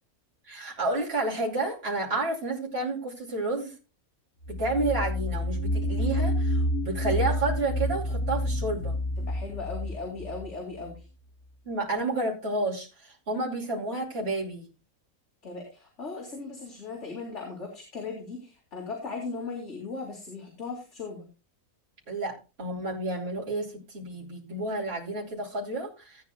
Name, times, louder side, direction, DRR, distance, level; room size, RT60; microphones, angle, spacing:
voice 1, 0.4-3.7 4.5-9.0 11.6-14.7 22.1-26.2, right 2 dB, 45° right, -4 dB, 3.0 m, -30 dB
sound 1, 4.4-11.1, equal, 75° left, 1.6 m, -29 dB
voice 2, 9.2-11.1 15.4-21.2, left 4 dB, 50° left, -1 dB, 3.0 m, -38 dB
16.5 x 9.5 x 2.2 m, 0.31 s
omnidirectional pair, 1.5 m